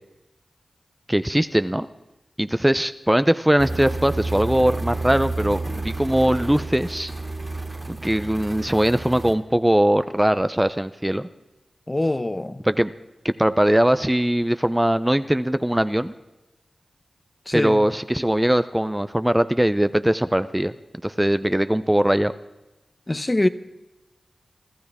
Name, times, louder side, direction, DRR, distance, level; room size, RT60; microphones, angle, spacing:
voice 1, 1.1-1.9 2.4-7.1 7.9-11.3 12.6-12.9 13.2-16.1 17.5-20.7 21.0-22.3, right 1 dB, 10° right, 0.5 m, -21 dB
sound 1, 3.6-9.3, right 2 dB, 30° right, 2.3 m, -30 dB
voice 2, 11.9-12.6 17.5-17.8 23.1-23.5, left 1 dB, 25° left, 0.8 m, -23 dB
24.5 x 13.5 x 3.6 m
cardioid pair, 40°, 0 cm